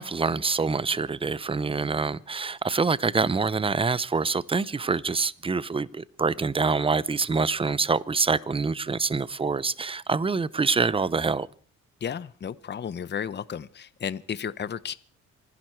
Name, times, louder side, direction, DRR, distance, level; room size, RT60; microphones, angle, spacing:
voice 1, 0.0-11.5, right 4 dB, 20° right, 0.7 m, -26 dB
voice 2, 12.0-15.0, left 8 dB, 35° left, 0.8 m, -33 dB
27.0 x 11.0 x 4.5 m
cardioid pair, 90°, 30 cm